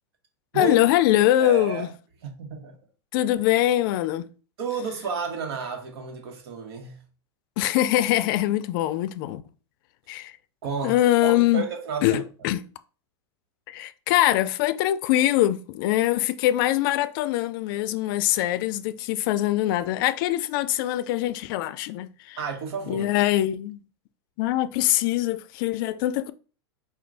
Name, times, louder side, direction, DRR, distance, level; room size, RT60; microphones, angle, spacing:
voice 1, 0.5-1.9 3.1-4.3 7.6-9.4 10.1-10.4 10.8-11.6 12.0-12.6 13.7-22.4 22.9-23.8 24.4-26.3, left 14 dB, 55° left, 0.4 m, -23 dB
voice 2, 1.4-1.9 2.2-2.8 4.6-7.0 10.6-11.0 11.2-12.2 22.4-23.0, right 5 dB, 70° right, 1.2 m, -31 dB
4.4 x 2.4 x 3.9 m
supercardioid pair, 130°, 14 cm